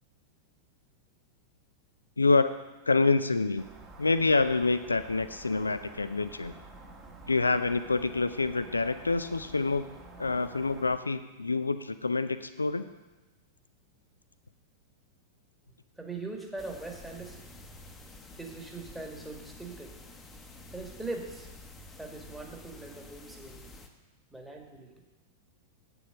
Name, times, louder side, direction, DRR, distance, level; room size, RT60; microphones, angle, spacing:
voice 1, 2.2-3.7 4.0-6.5 7.3-9.9 10.2-12.8, left 3 dB, 80° left, 12 dB, 0.4 m, -27 dB
sound 1, 3.6-11.0, right 3 dB, 20° right, 1.5 m, -50 dB
voice 2, 16.0-17.4 18.4-19.9 20.7-21.5 22.0-23.6 24.3-25.0, right 3 dB, 5° right, 1 dB, 1.7 m, -41 dB
sound 2, 16.6-23.9, left 2 dB, 15° left, 1.0 m, -49 dB
8.3 x 6.9 x 6.7 m, 1.1 s
figure-of-eight pair, 95°, 0 cm